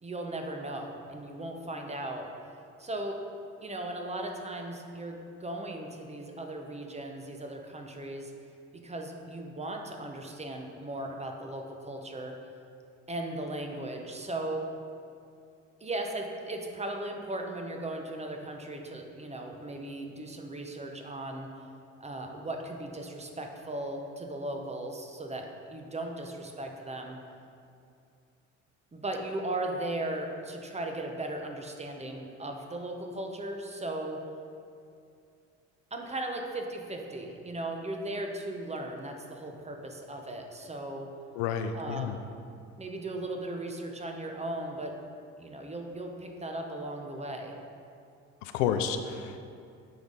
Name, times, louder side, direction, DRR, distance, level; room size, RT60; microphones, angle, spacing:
voice 1, 0.0-2.3 2.8-3.2 3.6-8.3 8.8-12.4 13.1-14.7 15.8-21.5 22.0-27.2 28.9-34.2 35.9-41.1 41.7-42.3 42.8-45.0 45.4-47.6, right 1 dB, 15° right, 3 dB, 0.8 m, -37 dB
voice 2, 41.4-42.2 48.4-49.4, left 7 dB, 75° left, 7 dB, 0.5 m, -30 dB
9.4 x 3.5 x 4.0 m, 2.5 s
hypercardioid pair, 60°, 37 cm